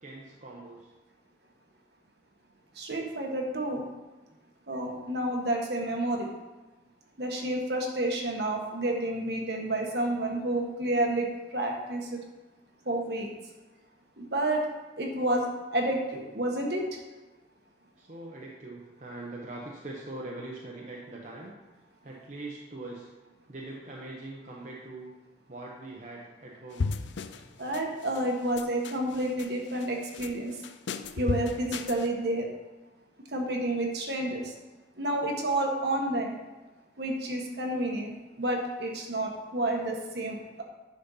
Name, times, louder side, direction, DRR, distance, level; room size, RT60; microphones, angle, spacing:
voice 1, 0.0-0.9 4.3-4.4 18.0-21.5 22.0-23.1 23.5-25.1 25.5-26.9, right 2 dB, 40° right, -3 dB, 1.0 m, -42 dB
voice 2, 2.8-3.8 4.7-6.3 7.2-12.2 12.9-13.3 14.2-14.6 15.0-15.5 15.7-16.8 27.6-30.5 31.2-32.5 33.3-34.5 35.0-36.3 37.0-40.6, right 1 dB, 60° right, 1 dB, 1.4 m, -30 dB
sound 1, 26.8-27.5 27.7-28.2 28.6-29.5 29.8-30.3 30.6-32.1, left 4 dB, 75° left, 0.5 m, -34 dB
10.5 x 4.3 x 5.6 m, 1.1 s
head